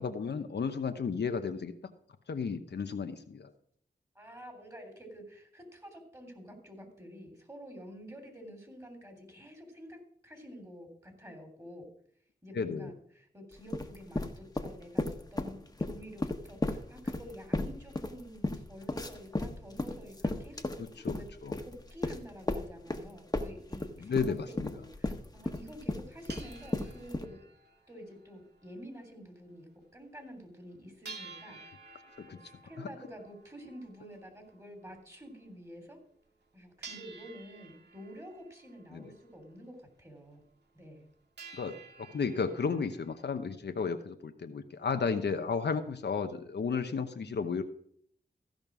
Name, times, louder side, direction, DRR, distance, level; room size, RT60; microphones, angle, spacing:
voice 1, 0.0-1.7 2.3-3.5 12.5-12.9 21.0-21.1 21.4-21.6 24.0-24.7 32.2-32.4 32.8-32.9 38.9-39.0 41.5-47.6, left 5 dB, 80° left, 7 dB, 0.9 m, -33 dB
voice 2, 4.1-10.0 10.2-11.9 12.4-21.3 21.6-27.4 27.9-31.6 32.3-36.0 36.5-40.4 40.7-41.1, equal, 20° right, 3 dB, 3.2 m, -49 dB
sound 1, 13.6-15.5 15.8-23.1 23.3-27.3, left 2 dB, 20° left, 1.3 m, -34 dB
sound 2, 23.7-23.8 24.4-24.5 24.7-24.8 25.6-25.7 25.9-29.1 29.3-29.4 29.8-29.9 30.3-30.4 31.0-35.6 36.3-36.4 36.8-39.8 40.2-40.3 40.6-41.1 41.4-43.2, right 4 dB, 75° right, 2.2 m, -52 dB
15.0 x 5.3 x 6.1 m, 0.63 s
cardioid pair, 55°, 17 cm